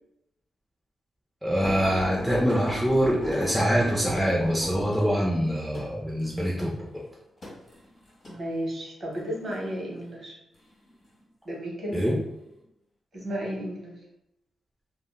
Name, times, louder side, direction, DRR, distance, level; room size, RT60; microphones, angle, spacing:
voice 1, 1.4-7.0 11.9-12.2, equal, ahead, -4 dB, 0.4 m, -24 dB
sound 1, 1.6-8.4 9.2-9.6 10.5-11.2 11.9-12.1 12.5-12.6, left 2 dB, 35° left, 1.4 m, -38 dB
voice 2, 8.3-10.4 11.4-12.0 13.1-14.0, equal, 40° right, -2 dB, 0.8 m, -33 dB
3.5 x 2.1 x 2.2 m, 0.82 s
wide cardioid pair, 150°, 0 cm